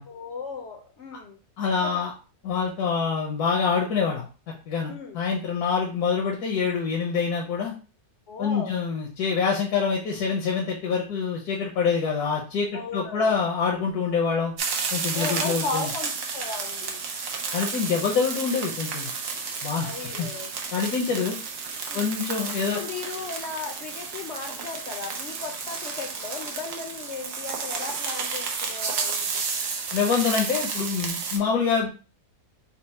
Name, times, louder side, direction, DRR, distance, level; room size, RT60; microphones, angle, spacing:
voice 1, 0.1-1.4 1.8-2.0 4.9-5.2 8.3-8.8 12.7-13.4 15.1-17.0 19.8-20.5 21.9-22.1 22.7-29.3, left 4 dB, 65° left, 4 dB, 0.7 m, -36 dB
voice 2, 1.6-2.1 2.4-4.3 4.7-7.7 8.4-14.5 14.9-15.9 17.5-19.1 19.6-20.3 20.7-21.4 21.9-22.8 29.9-31.9, left 5 dB, 85° left, -1 dB, 1.3 m, -26 dB
sound 1, 14.6-31.4, right 5 dB, 65° right, 1.1 m, -32 dB
4.2 x 2.0 x 4.1 m, 0.36 s
omnidirectional pair, 1.6 m